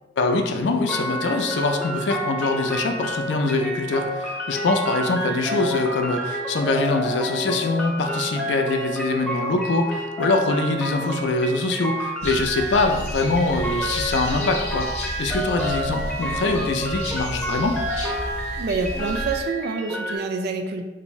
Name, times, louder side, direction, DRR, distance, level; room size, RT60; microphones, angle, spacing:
voice 1, 0.2-14.9 15.2-17.8, left 3 dB, 80° left, 5 dB, 0.4 m, -23 dB
sound 1, 0.9-20.2, right 1 dB, 5° left, 0.5 m, -30 dB
sound 2, 12.2-19.4, left 1 dB, 40° left, 0.8 m, -32 dB
voice 2, 18.6-20.9, right 4 dB, 60° right, 6 dB, 0.3 m, -27 dB
3.4 x 2.6 x 3.0 m, 1.2 s
head